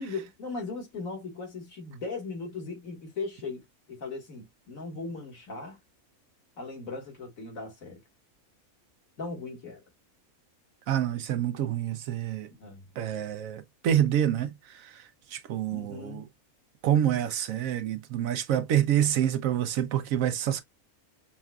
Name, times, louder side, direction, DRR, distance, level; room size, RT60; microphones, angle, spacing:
voice 1, 0.0-3.6 3.9-5.8 6.6-8.0 9.2-9.8 12.6-12.9 15.7-16.3, left 3 dB, 65° left, 2.0 m, -38 dB
voice 2, 10.9-12.5 13.0-15.0 15.3-16.2 16.8-20.6, right 10 dB, 75° right, 1.0 m, -27 dB
5.6 x 2.3 x 2.3 m
omnidirectional pair, 1.5 m